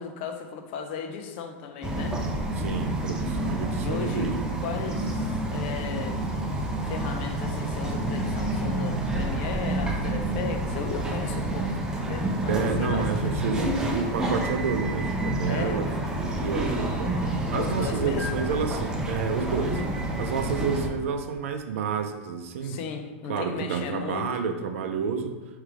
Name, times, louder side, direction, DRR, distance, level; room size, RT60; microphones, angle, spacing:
voice 1, 0.0-2.2 3.8-4.3 4.6-6.2 6.8-11.7 12.1-13.7 15.5-15.9 17.5-18.4 19.6-19.9 22.6-24.3, left 6 dB, 60° left, 5 dB, 0.6 m, -36 dB
Bird vocalization bird call bird song, 1.8-20.9, right 1 dB, 10° right, 0.6 m, -29 dB
voice 2, 2.6-4.5 12.5-15.9 16.2-17.1 17.5-19.8 20.2-22.8 23.3-25.4, right 6 dB, 80° right, 6 dB, 0.5 m, -29 dB
3.3 x 3.2 x 4.8 m, 1.2 s
supercardioid pair, 125°, 7 cm